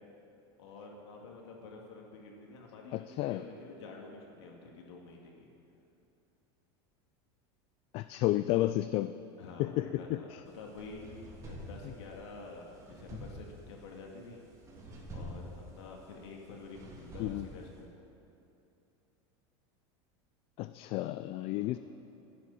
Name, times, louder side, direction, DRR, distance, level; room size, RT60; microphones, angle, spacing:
voice 1, 0.6-5.5 9.4-14.4 15.1-18.0 21.4-21.7, left 3 dB, 90° left, 0 dB, 2.4 m, -49 dB
voice 2, 2.9-3.4 7.9-9.1 9.6-10.4 17.2-17.5 20.6-21.8, left 16 dB, 45° left, 12 dB, 0.4 m, -32 dB
sound 1, 10.5-17.8, equal, 25° right, 2.7 m, -48 dB
23.0 x 11.5 x 4.3 m, 2.7 s
supercardioid pair, 145°, 14 cm